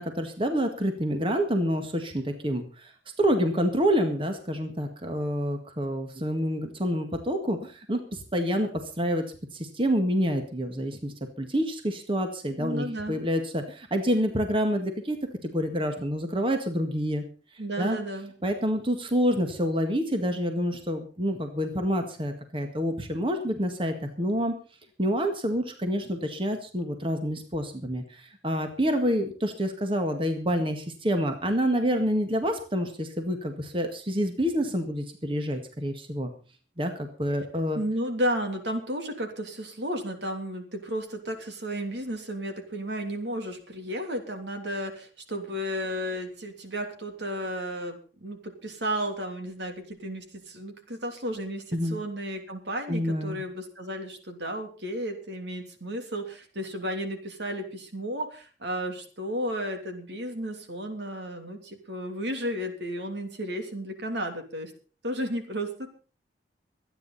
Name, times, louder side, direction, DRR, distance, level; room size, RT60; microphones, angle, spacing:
voice 1, 0.0-2.9 3.2-8.7 9.0-9.2 9.5-15.2 15.4-17.3 17.8-18.0 18.4-24.5 25.0-36.3 36.8-37.8 51.7-52.0 52.9-53.4, equal, 30° right, 5 dB, 1.9 m, -27 dB
voice 2, 12.6-13.2 17.6-18.3 37.7-64.7 65.0-65.9, equal, 80° right, 5 dB, 3.2 m, -33 dB
24.5 x 9.7 x 4.2 m, 0.37 s
head